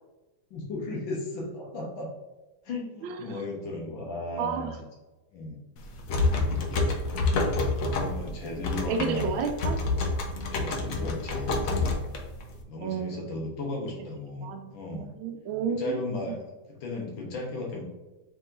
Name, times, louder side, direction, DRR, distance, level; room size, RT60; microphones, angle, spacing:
voice 1, 0.5-2.1 2.6-4.7 5.3-5.6 7.9-9.3 10.5-12.1 12.7-15.1 15.7-16.4 16.8-17.8, left 2 dB, 85° left, -1 dB, 1.7 m, -35 dB
voice 2, 3.0-3.4 4.4-4.7 8.9-9.8 10.6-10.7 12.8-13.3 14.4-16.0 16.3-16.4, right 6 dB, 90° right, 5 dB, 1.4 m, -32 dB
sound 1, 5.8-12.6, left 2 dB, 65° left, 0.9 m, -28 dB
5.4 x 3.7 x 2.5 m, 1.1 s
omnidirectional pair, 2.1 m